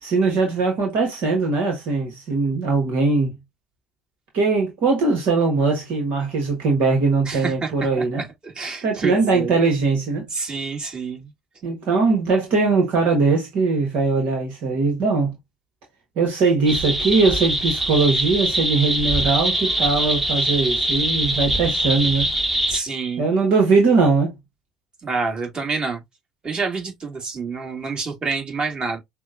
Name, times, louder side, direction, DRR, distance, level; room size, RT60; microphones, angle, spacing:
voice 1, 0.0-3.3 4.3-8.2 8.8-10.2 11.6-15.3 16.2-22.3 23.2-24.3, right 4 dB, 60° right, 1.3 m, -20 dB
voice 2, 7.2-7.7 8.1-9.6 10.3-11.3 22.7-23.3 25.0-26.0 26.4-29.0, right 4 dB, 30° right, 2.1 m, -28 dB
sound 1, 16.7-22.8, right 1 dB, 5° right, 1.1 m, -23 dB
6.0 x 2.3 x 2.4 m
hypercardioid pair, 60°, 3 cm